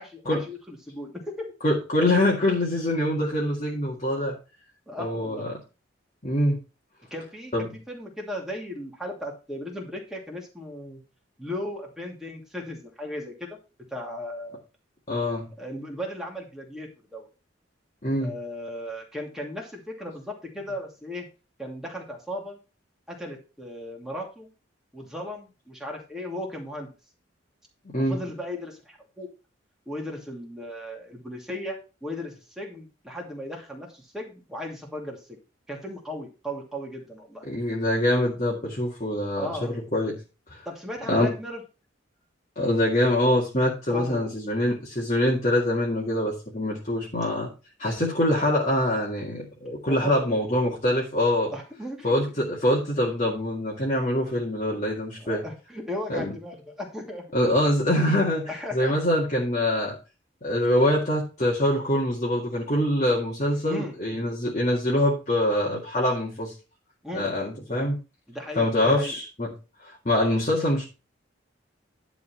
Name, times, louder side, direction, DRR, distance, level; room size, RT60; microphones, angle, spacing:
voice 1, 0.0-1.5 4.9-5.5 7.1-11.0 11.4-13.6 13.9-14.6 15.6-17.3 18.2-21.3 21.6-22.6 23.1-24.5 24.9-26.9 28.0-29.3 29.9-35.4 35.7-37.4 39.4-39.8 40.7-41.6 43.9-44.4 49.9-50.3 51.5-52.1 55.2-57.3 58.5-58.9 63.6-63.9 67.0-67.3 68.3-69.2, left 1 dB, 5° right, -1 dB, 2.7 m, -36 dB
voice 2, 1.6-4.4 5.0-5.6 6.2-6.6 7.5-7.8 15.1-15.5 18.0-18.3 27.9-28.2 37.5-40.2 40.5-40.6 41.1-41.3 42.6-47.5 47.8-51.5 52.0-55.4 56.1-56.3 57.3-60.0 60.4-66.5 67.1-68.0 68.6-69.5 69.8-70.8, left 1 dB, 40° left, -3 dB, 2.0 m, -24 dB
11.0 x 4.2 x 5.6 m, 0.31 s
head